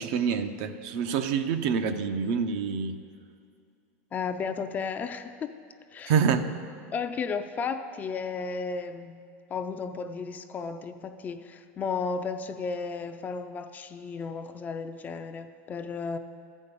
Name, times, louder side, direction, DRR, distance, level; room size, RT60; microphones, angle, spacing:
voice 1, 0.0-2.9 6.1-6.5, right 6 dB, 55° right, 9 dB, 0.7 m, -26 dB
voice 2, 4.1-5.5 5.9-6.2 6.9-9.2 9.5-16.2, left 5 dB, 20° left, 8 dB, 0.4 m, -34 dB
13.0 x 5.4 x 8.2 m, 2.4 s
supercardioid pair, 145°, 8 cm